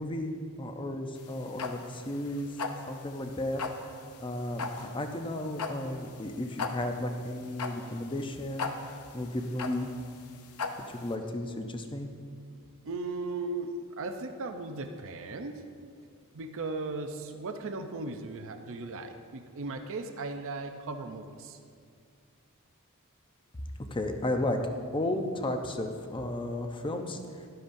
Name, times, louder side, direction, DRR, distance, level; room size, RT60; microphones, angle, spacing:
voice 1, 0.0-2.5 2.9-3.6 4.2-8.7 9.1-9.9 10.9-12.1 23.9-24.6 24.9-27.2, left 1 dB, 20° left, 5 dB, 0.7 m, -33 dB
sound 1, 1.2-11.1, left 5 dB, 75° left, 0.7 m, -38 dB
voice 2, 12.8-15.6 16.3-21.6, right 3 dB, 60° right, 6 dB, 0.6 m, -37 dB
12.5 x 11.5 x 2.6 m, 2.2 s
head